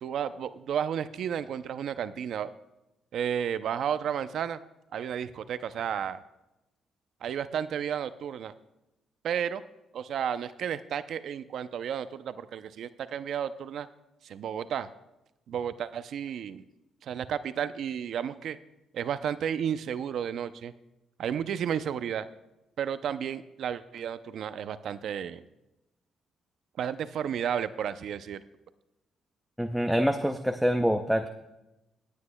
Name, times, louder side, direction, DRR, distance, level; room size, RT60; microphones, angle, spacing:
voice 1, 0.0-2.5 3.1-4.6 4.9-6.2 7.2-8.5 9.2-9.6 9.9-13.9 14.2-14.9 15.5-16.6 17.0-18.6 18.9-20.7 21.2-22.3 22.8-25.4 26.8-28.4, right 8 dB, 70° right, 13 dB, 0.5 m, -32 dB
voice 2, 29.6-31.3, equal, ahead, 5 dB, 0.5 m, -25 dB
20.5 x 8.3 x 2.2 m, 0.96 s
cardioid pair, 90°, 0 cm